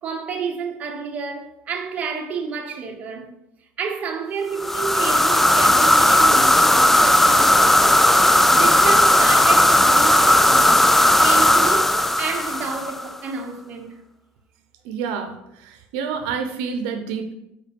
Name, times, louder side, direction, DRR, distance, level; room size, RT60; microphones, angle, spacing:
voice 1, 0.0-3.3 3.8-8.0 8.5-10.8 11.2-13.9, right 5 dB, 40° right, 1.1 m, -30 dB
sound 1, 4.6-13.1, left 1 dB, 5° left, 0.3 m, -16 dB
voice 2, 14.8-17.3, right 6 dB, 80° right, 0.7 m, -28 dB
5.4 x 4.6 x 5.2 m
supercardioid pair, 120°, 4 cm